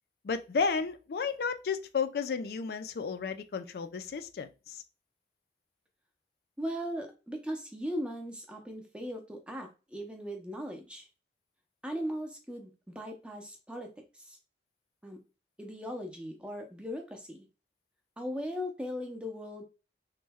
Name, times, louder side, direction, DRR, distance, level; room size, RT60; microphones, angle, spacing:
voice 1, 0.2-4.8, left 5 dB, 55° left, 0.3 m, -32 dB
voice 2, 6.6-11.1 11.8-14.4 15.0-15.2 15.6-17.5 18.2-19.6, equal, 5° right, 0.5 m, -38 dB
3.1 x 2.1 x 3.4 m
head